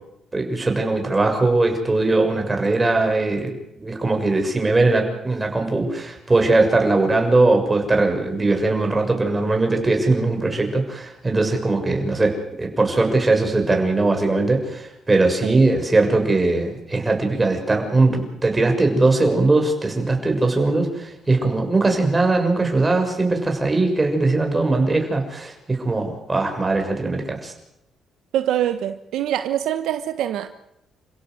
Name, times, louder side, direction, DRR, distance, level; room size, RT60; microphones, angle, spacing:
voice 1, 0.3-3.5 3.8-27.5, right 2 dB, 20° right, 6.6 m, -20 dB
voice 2, 28.3-30.5, right 11 dB, 85° right, 1.2 m, -24 dB
29.5 x 16.5 x 7.9 m
cardioid pair, 90°, 0 cm